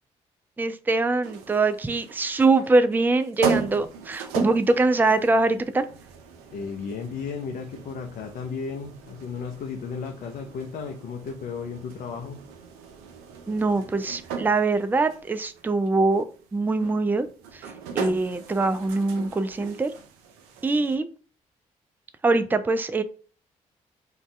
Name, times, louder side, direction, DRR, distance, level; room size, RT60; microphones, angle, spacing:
voice 1, 0.6-5.9 13.5-19.9 20.6-21.1 22.2-23.0, right 3 dB, 10° right, 11 dB, 0.4 m, -23 dB
sound 1, 1.2-21.0, right 6 dB, 80° right, 0.5 m, -37 dB
voice 2, 6.5-12.4, left 5 dB, 60° left, 4 dB, 0.5 m, -34 dB
2.6 x 2.3 x 3.2 m, 0.38 s
hypercardioid pair, 45°, 16 cm